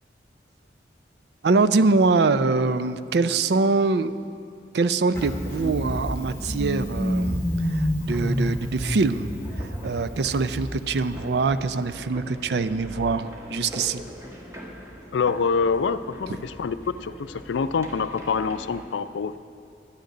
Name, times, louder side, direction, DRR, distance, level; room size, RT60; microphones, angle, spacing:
voice 1, 1.4-4.1 4.7-7.4 7.7-9.3 9.6-14.0, right 3 dB, 65° right, 13 dB, 0.4 m, -23 dB
Engine starting, 5.1-11.6, equal, 15° left, 1.4 m, -29 dB
sound 1, 8.0-18.8, equal, 15° right, 1.2 m, -42 dB
voice 2, 15.1-19.4, left 5 dB, 90° left, 13 dB, 0.4 m, -26 dB
11.5 x 6.5 x 9.4 m, 2.5 s
head